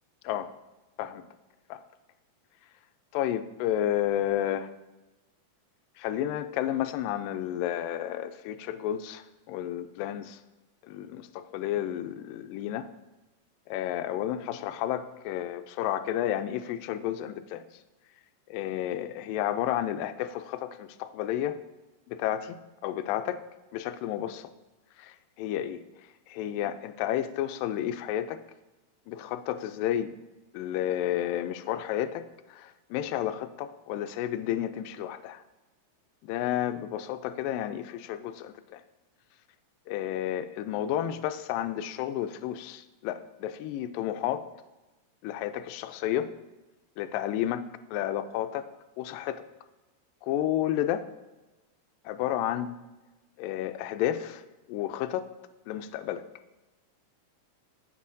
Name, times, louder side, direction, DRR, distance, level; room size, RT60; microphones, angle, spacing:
voice 1, 3.1-4.7 6.0-10.4 10.8-12.9 13.7-17.6 18.5-21.6 22.1-23.4 23.7-24.5 25.0-25.8 26.3-28.4 29.1-30.1 30.5-32.3 32.5-35.4 36.2-38.8 39.9-44.5 45.2-46.3 47.0-48.7 49.0-49.4 50.2-51.0 52.1-52.8 53.4-54.4 54.7-55.3 55.7-56.2, left 11 dB, 85° left, 10 dB, 2.2 m, -31 dB
14.5 x 7.7 x 2.6 m, 1.1 s
omnidirectional pair, 4.0 m